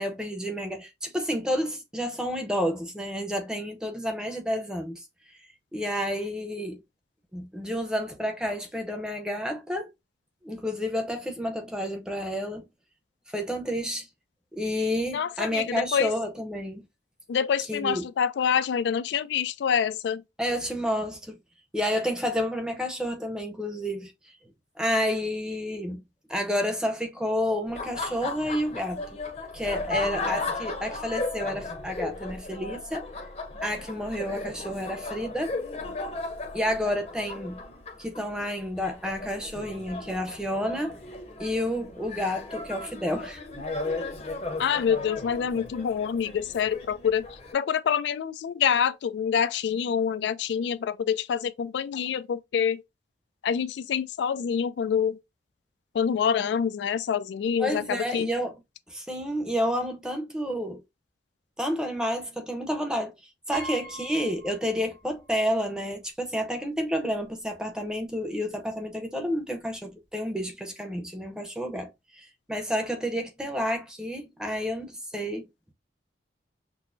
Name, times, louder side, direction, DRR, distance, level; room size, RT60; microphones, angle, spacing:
voice 1, 0.0-5.1 5.7-6.8 7.3-9.9 10.4-12.7 13.3-14.1 14.5-16.9 17.7-18.1 20.4-21.4 21.7-24.4 24.8-26.0 26.3-29.0 29.5-33.1 33.6-35.6 36.5-37.6 38.0-41.0 41.4-43.7 57.6-58.6 58.9-60.8 61.6-63.1 63.5-75.5, equal, 5° right, 0.7 m, -30 dB
voice 2, 15.1-16.1 17.3-20.2 44.6-47.2 47.5-52.8 53.4-55.2 55.9-58.3, left 7 dB, 80° left, 0.3 m, -26 dB
Laughter, 27.7-47.5, left 3 dB, 35° left, 0.7 m, -36 dB
Piano, 63.5-65.3 65.7-65.8 66.9-67.0 67.3-67.6, right 1 dB, 75° right, 1.8 m, -42 dB
6.0 x 2.1 x 2.5 m
head